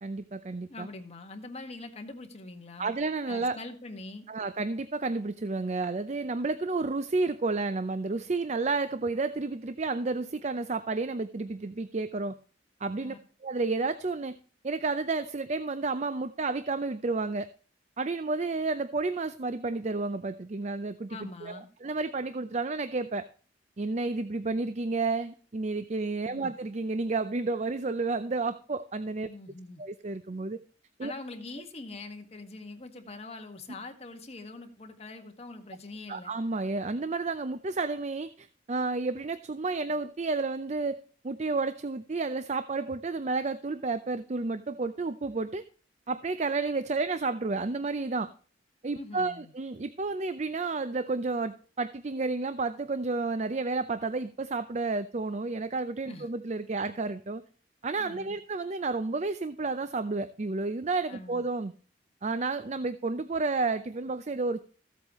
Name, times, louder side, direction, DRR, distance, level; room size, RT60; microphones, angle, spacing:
voice 1, 0.0-0.9 2.8-3.6 4.3-12.3 12.8-13.2 13.4-14.4 14.6-17.5 18.0-23.2 23.8-29.3 29.8-30.6 31.0-31.1 36.1-41.0 41.2-45.6 46.1-48.3 48.8-57.4 57.8-61.7 62.2-64.6, right 3 dB, 40° right, 12 dB, 0.5 m, -31 dB
voice 2, 0.7-2.9 3.3-4.2 13.0-13.2 21.1-21.7 26.3-26.5 29.2-29.8 31.0-36.3 48.9-49.5 56.1-56.3 58.0-58.4 61.1-61.5, left 2 dB, 35° left, 5 dB, 1.7 m, -43 dB
15.0 x 8.1 x 3.1 m, 0.41 s
head